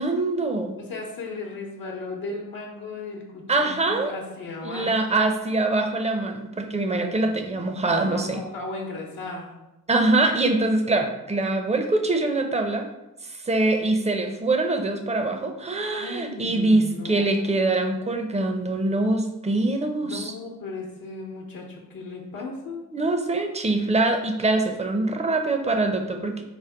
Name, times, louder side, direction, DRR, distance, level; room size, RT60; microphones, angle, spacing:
voice 1, 0.0-0.7 3.5-4.1 4.6-8.4 9.9-12.9 13.2-20.3 22.9-26.4, right 2 dB, 20° right, 5 dB, 0.6 m, -24 dB
voice 2, 0.8-5.0 7.9-9.5 15.9-17.8 20.0-22.9, left 3 dB, 70° left, -1 dB, 0.9 m, -36 dB
5.2 x 2.1 x 4.7 m, 0.96 s
cardioid pair, 70°, 36 cm